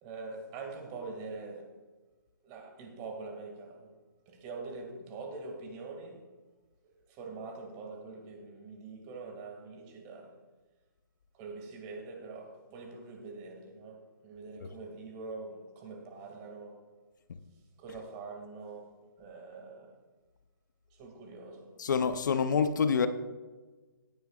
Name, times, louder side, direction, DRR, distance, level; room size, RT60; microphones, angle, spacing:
voice 1, 0.0-1.7 2.4-3.9 4.3-6.2 6.8-10.4 11.3-16.9 17.8-20.0 20.9-21.7, right 3 dB, 25° right, 2.1 m, -44 dB
voice 2, 21.8-23.1, left 6 dB, 60° left, 0.7 m, -27 dB
17.5 x 9.2 x 2.4 m
hypercardioid pair, 140°, 11 cm